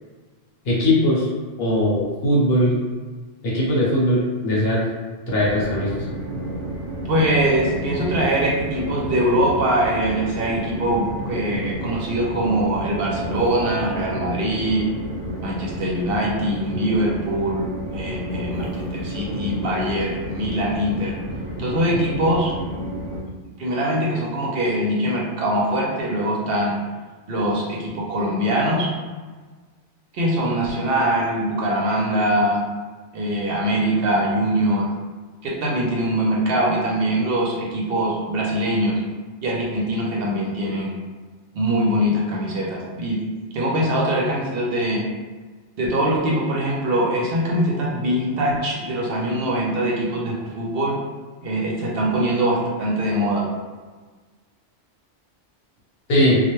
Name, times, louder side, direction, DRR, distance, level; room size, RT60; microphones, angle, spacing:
voice 1, 0.6-1.3 1.6-2.8 3.4-4.8 5.3-6.0 56.1-56.4, left 1 dB, 60° left, -6 dB, 1.0 m, -19 dB
Train, 5.3-23.2, right 1 dB, 40° right, 0.8 m, -31 dB
voice 2, 7.1-14.9 15.4-21.2 21.6-22.5 23.6-26.8 27.3-28.9 30.1-32.6 33.1-34.9 35.4-39.0 39.4-40.9 41.5-43.2 43.5-45.1 45.8-51.0 51.4-53.5, right 1 dB, 60° right, -3 dB, 0.7 m, -22 dB
2.4 x 2.1 x 3.0 m, 1.4 s
omnidirectional pair, 1.2 m